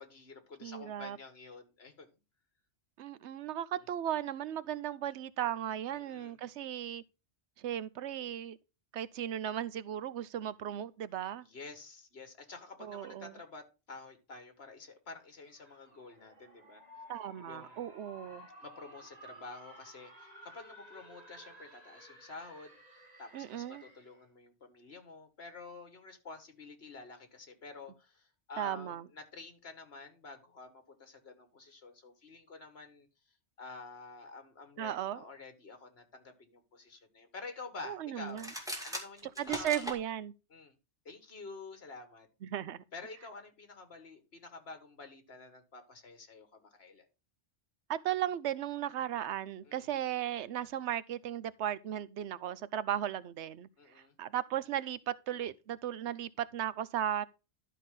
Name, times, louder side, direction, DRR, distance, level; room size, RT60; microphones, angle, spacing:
voice 1, 0.0-2.1 3.7-3.8 5.9-6.4 11.4-16.8 17.5-17.8 18.6-33.1 33.6-38.5 38.8-39.9 40.5-40.7 41.1-42.3 42.9-47.1 49.6-49.9 53.8-54.2, left 3 dB, 65° left, 1.9 m, -49 dB
voice 2, 0.6-1.2 3.0-7.0 7.6-8.6 8.9-11.4 12.8-13.3 17.1-18.5 23.3-23.8 28.6-29.1 34.8-35.2 37.8-38.5 39.4-40.3 42.4-42.8 47.9-53.7 53.9-57.3, right 11 dB, 85° right, 0.9 m, -36 dB
sound 1, 15.4-24.2, equal, 35° right, 2.2 m, -55 dB
sound 2, 38.3-40.0, equal, 5° right, 2.1 m, -39 dB
12.0 x 5.5 x 3.8 m
omnidirectional pair, 1.1 m